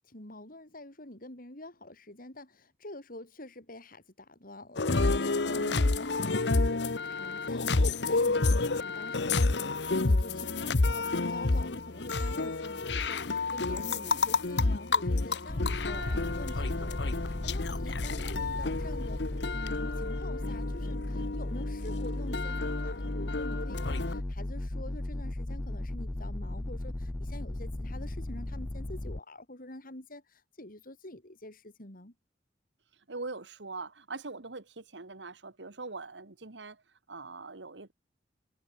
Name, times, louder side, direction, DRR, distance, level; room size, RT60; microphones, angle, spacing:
voice 1, 0.0-16.0 16.4-19.2 19.5-32.1, left 1 dB, 50° left, 5.1 m, -47 dB
sound 1, 4.8-24.2, left 3 dB, 70° left, 1.0 m, -30 dB
voice 2, 5.5-5.9 13.9-14.2 15.9-16.3 16.6-16.9 18.0-18.3 32.9-36.8 37.1-37.9, right 3 dB, 85° right, 1.7 m, -43 dB
sound 2, 15.5-29.2, left 1 dB, 20° left, 0.5 m, -36 dB
head